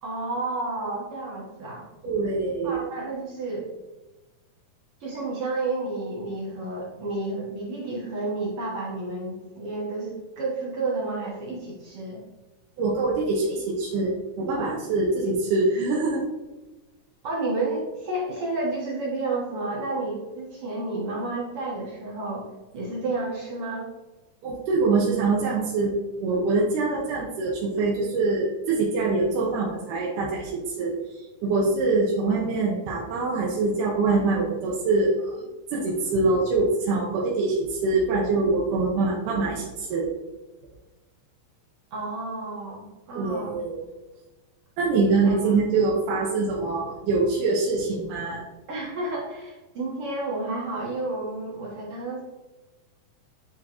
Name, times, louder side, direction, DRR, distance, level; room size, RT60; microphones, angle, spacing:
voice 1, 0.0-1.8 2.6-3.6 5.0-12.2 17.2-22.5 22.7-23.9 41.9-43.6 45.2-45.5 48.7-52.2, right 2 dB, 60° right, -4 dB, 1.7 m, -31 dB
voice 2, 2.0-2.8 12.8-16.2 24.4-31.0 31.4-35.4 35.7-40.1 43.2-43.8 44.8-48.4, right 3 dB, 75° right, -4 dB, 2.2 m, -24 dB
9.8 x 3.6 x 2.9 m, 1.1 s
omnidirectional pair, 4.0 m